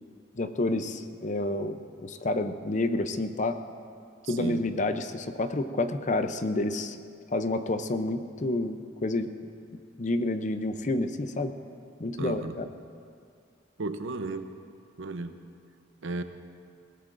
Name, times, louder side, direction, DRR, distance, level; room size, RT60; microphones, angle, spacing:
voice 1, 0.4-3.6 4.3-7.0 7.3-9.3 10.0-11.5 12.0-12.7, left 2 dB, 40° left, 9 dB, 0.6 m, -29 dB
voice 2, 4.3-4.6 12.2-12.6 13.8-14.5 15.0-15.4 16.0-16.2, right 2 dB, 80° right, 9 dB, 0.8 m, -34 dB
20.5 x 17.5 x 2.6 m, 2.3 s
head